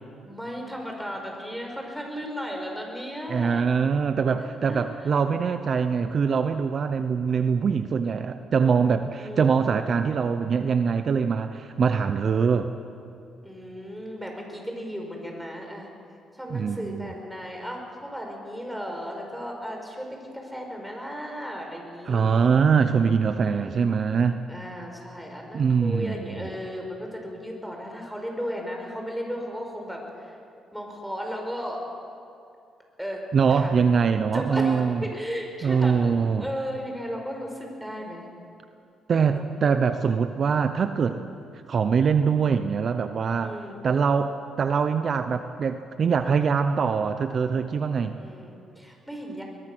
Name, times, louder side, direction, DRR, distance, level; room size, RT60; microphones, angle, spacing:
voice 1, 0.2-3.7 4.4-5.1 9.2-9.6 13.4-15.9 16.3-22.5 23.4-24.0 24.5-30.4 30.7-31.8 33.0-33.2 33.5-33.7 34.3-38.2 39.3-39.4 43.4-43.8 48.2-49.4, equal, ahead, 1 dB, 5.1 m, -35 dB
voice 2, 3.3-12.7 16.5-17.1 22.1-24.4 25.5-26.4 33.3-35.0 35.6-36.5 39.1-41.2 41.7-43.6 43.8-48.1, right 6 dB, 50° right, 9 dB, 0.8 m, -23 dB
21.5 x 21.5 x 6.3 m, 2.5 s
cardioid pair, 90°, 0 cm